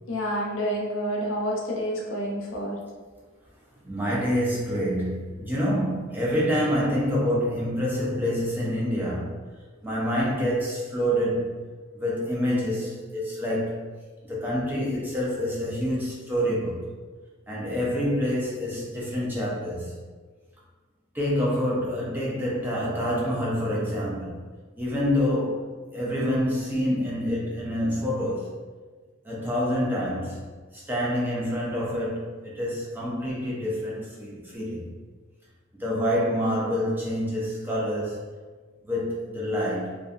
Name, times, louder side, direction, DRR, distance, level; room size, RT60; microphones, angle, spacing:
voice 1, 0.1-2.8, equal, 65° left, -2 dB, 0.6 m, -28 dB
voice 2, 3.8-9.3 9.8-11.5 11.9-13.8 14.2-16.8 17.5-19.9 21.1-24.3 24.8-28.5 29.2-30.4 30.7-34.8 35.7-38.2 38.9-40.0, equal, 10° right, -6 dB, 0.4 m, -27 dB
2.6 x 2.3 x 2.3 m, 1.4 s
head